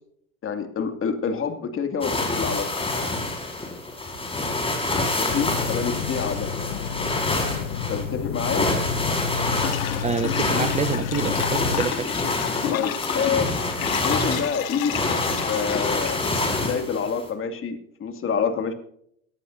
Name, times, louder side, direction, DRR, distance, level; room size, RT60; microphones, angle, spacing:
voice 1, 0.4-2.7 5.1-6.5 7.9-8.7 12.7-13.5 14.0-15.2 15.5-16.2 16.5-18.7, left 6 dB, 30° left, 6 dB, 2.5 m, -27 dB
sound 1, 2.0-17.3, left 2 dB, 15° left, 5.0 m, -27 dB
sound 2, 5.3-11.9, left 7 dB, 50° left, 1.2 m, -31 dB
sound 3, 9.6-16.7, left 13 dB, 80° left, 0.9 m, -31 dB
voice 2, 10.0-12.1, right 6 dB, 15° right, 11 dB, 0.7 m, -27 dB
20.5 x 15.5 x 2.7 m, 0.69 s
hypercardioid pair, 90°, 41 cm